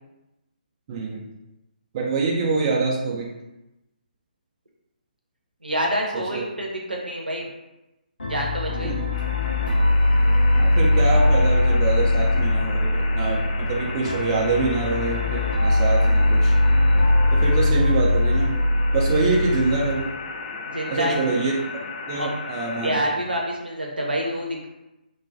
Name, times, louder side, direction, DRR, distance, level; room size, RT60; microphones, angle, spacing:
voice 1, 0.9-1.3 1.9-3.3 6.1-6.4 8.8-9.0 10.5-16.5 17.3-18.6 18.9-20.1 20.9-21.5 22.1-23.0, right 3 dB, 30° right, -2 dB, 0.3 m, -25 dB
voice 2, 5.6-7.5 8.2-8.9 20.6-21.2 22.2-22.3 22.8-24.7, equal, 80° right, -1 dB, 0.6 m, -27 dB
sound 1, 8.2-19.9, left 2 dB, 75° left, 0.6 m, -20 dB
sound 2, 9.1-23.0, left 3 dB, 45° left, 0.3 m, -35 dB
2.2 x 2.2 x 2.5 m, 0.96 s
figure-of-eight pair, 135°, 5 cm